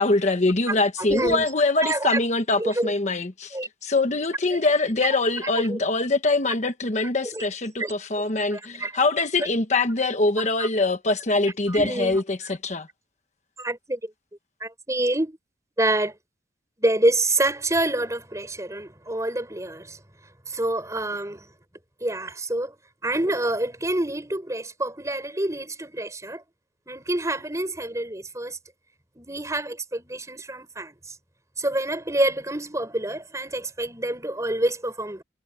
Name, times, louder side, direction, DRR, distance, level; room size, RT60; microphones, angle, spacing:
voice 1, 0.0-12.9, left 3 dB, 40° left, 1.1 m, -23 dB
voice 2, 0.7-1.5 1.8-2.2 2.6-2.9 3.5-3.7 4.5-4.6 5.7-5.8 7.3-7.4 7.8-7.9 8.5-8.9 10.4-10.7 11.7-12.2 13.6-14.1 14.6-15.4 15.8-16.1 16.8-20.0 20.5-21.5 22.0-22.7 23.0-26.4 26.9-28.6 29.2-30.9 31.6-35.2, right 1 dB, 20° right, 5.7 m, -27 dB
head